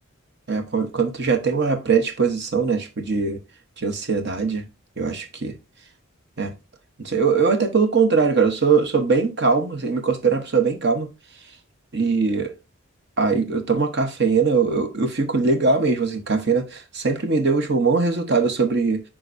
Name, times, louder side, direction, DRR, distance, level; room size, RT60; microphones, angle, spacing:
voice 1, 0.5-3.4 3.8-4.6 5.0-5.5 6.4-6.5 7.0-11.1 11.9-12.5 13.2-19.0, right 4 dB, 55° right, 1.1 m, -21 dB
10.5 x 3.8 x 2.6 m
head